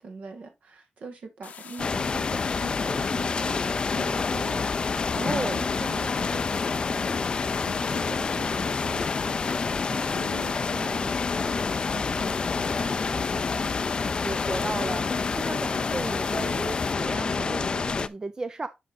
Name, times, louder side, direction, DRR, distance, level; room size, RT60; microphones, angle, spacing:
voice 1, 0.0-4.7 5.4-7.3 7.7-9.4 9.9-11.6 11.9-13.8, right 3 dB, 65° right, 2.0 m, -42 dB
sound 1, 1.4-16.9, left 7 dB, 70° left, 0.8 m, -44 dB
sound 2, 1.8-18.1, left 4 dB, 35° left, 0.5 m, -28 dB
voice 2, 5.1-5.6 14.2-18.7, right 3 dB, 25° right, 0.5 m, -34 dB
8.3 x 4.9 x 4.0 m
wide cardioid pair, 135°, 3 cm